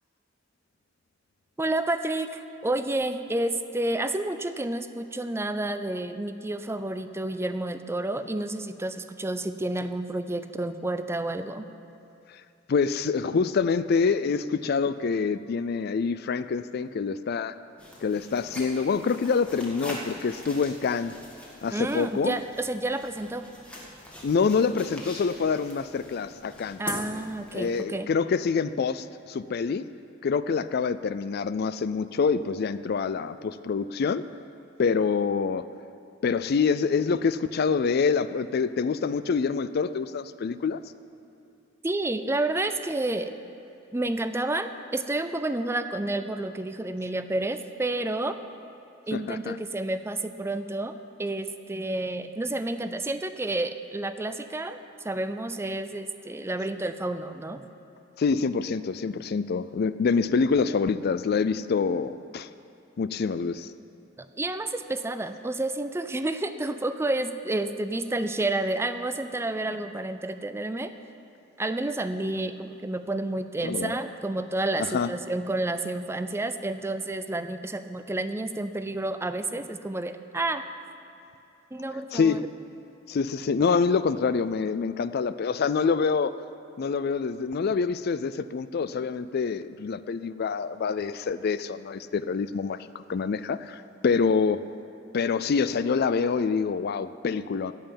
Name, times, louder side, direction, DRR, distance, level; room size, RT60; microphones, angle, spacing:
voice 1, 1.6-11.7 21.7-23.4 26.8-28.1 41.8-43.3 43.9-48.4 49.1-54.8 55.0-57.6 64.2-70.9 71.6-80.6 81.7-82.4, right 2 dB, 15° right, 10 dB, 0.4 m, -30 dB
voice 2, 12.7-17.5 18.0-21.1 21.6-22.4 24.2-26.8 27.5-29.8 30.2-34.2 34.8-35.6 36.2-40.8 49.1-49.6 58.2-62.5 63.0-63.7 73.6-73.9 74.8-75.1 82.1-82.4 83.1-86.3 86.8-94.6 95.1-97.7, left 5 dB, 55° left, 14 dB, 0.4 m, -26 dB
sound 1, 17.8-27.8, equal, 5° left, 1.7 m, -42 dB
15.5 x 5.6 x 9.1 m, 2.8 s
head